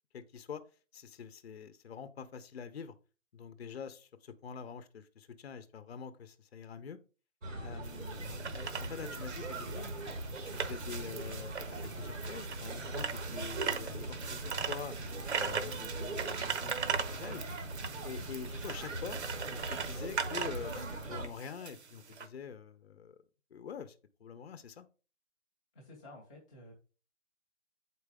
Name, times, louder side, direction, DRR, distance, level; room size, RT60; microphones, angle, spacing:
voice 1, 0.1-0.6 0.9-2.9 3.3-7.0 7.6-9.9 10.4-11.5 12.0-14.9 15.3-17.4 18.0-23.2 23.5-23.9 24.2-24.9, left 6 dB, 55° left, 12 dB, 0.8 m, -45 dB
sound 1, 7.4-21.3, right 2 dB, 90° right, 1.5 m, -41 dB
sound 2, 7.8-22.3, right 6 dB, 60° right, 0.9 m, -40 dB
voice 2, 25.7-26.7, left 1 dB, 5° left, -4 dB, 0.6 m, -52 dB
8.0 x 4.6 x 3.4 m, 0.34 s
hypercardioid pair, 155°, 37 cm